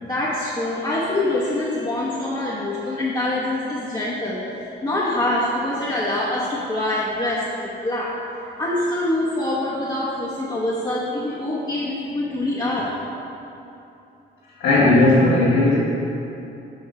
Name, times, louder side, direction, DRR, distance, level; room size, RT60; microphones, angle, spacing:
voice 1, 0.0-8.2 8.6-12.9, left 1 dB, 25° left, -8 dB, 1.0 m, -25 dB
voice 2, 14.6-15.8, left 2 dB, 85° left, -9 dB, 1.3 m, -16 dB
6.7 x 3.8 x 4.7 m, 2.9 s
cardioid pair, 90°, 20 cm